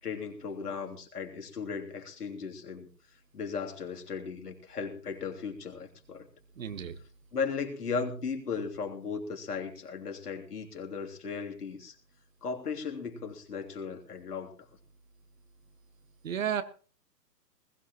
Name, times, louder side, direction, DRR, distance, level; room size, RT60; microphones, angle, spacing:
voice 1, 0.0-2.9 3.3-6.3 7.3-12.0 12.4-14.5, left 5 dB, 65° left, 3 dB, 3.3 m, -36 dB
voice 2, 6.6-7.0 16.2-16.6, right 8 dB, 50° right, 11 dB, 1.6 m, -32 dB
20.5 x 15.5 x 3.1 m, 0.38 s
figure-of-eight pair, 130°, 50 cm